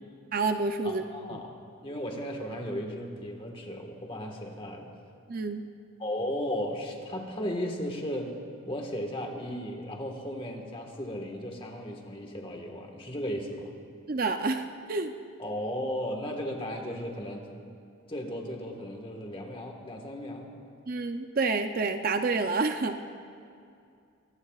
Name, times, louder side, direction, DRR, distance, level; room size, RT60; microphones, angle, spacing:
voice 1, 0.3-1.0 1.3-1.4 5.3-5.7 14.1-15.1 20.9-23.1, right 3 dB, 40° right, 7 dB, 0.5 m, -28 dB
voice 2, 0.8-4.9 6.0-8.4 8.6-13.7 15.4-17.5 18.1-20.5, equal, 25° left, 2 dB, 1.5 m, -35 dB
23.0 x 19.5 x 2.4 m, 2.4 s
head